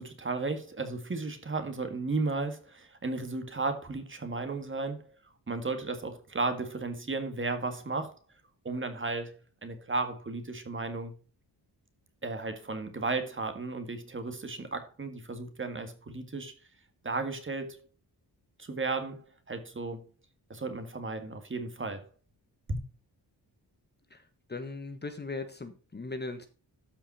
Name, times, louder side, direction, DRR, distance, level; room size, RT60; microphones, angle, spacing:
voice 1, 0.0-5.1 5.5-8.1 8.6-9.4 9.6-11.1 12.2-16.5 17.0-17.8 18.6-20.0 20.5-22.0 22.7-22.8, right 3 dB, 30° right, 1.8 m, -34 dB
voice 2, 24.5-26.5, left 3 dB, 25° left, 1.2 m, -38 dB
13.0 x 5.7 x 4.2 m
wide cardioid pair, 145°, 41 cm